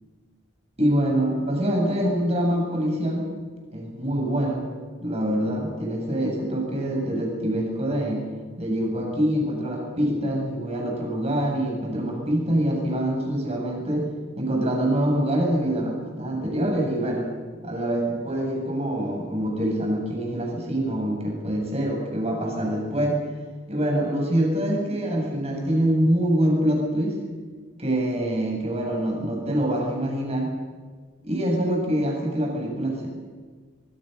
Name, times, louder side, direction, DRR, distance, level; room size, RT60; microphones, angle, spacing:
voice 1, 0.8-3.3 3.7-4.7 5.0-8.2 8.6-14.1 14.4-17.3 17.6-23.2 23.7-27.2 27.8-30.5 31.2-33.1, right 1 dB, 30° right, 0 dB, 7.4 m, -25 dB
25.0 x 22.5 x 6.8 m, 1.5 s
head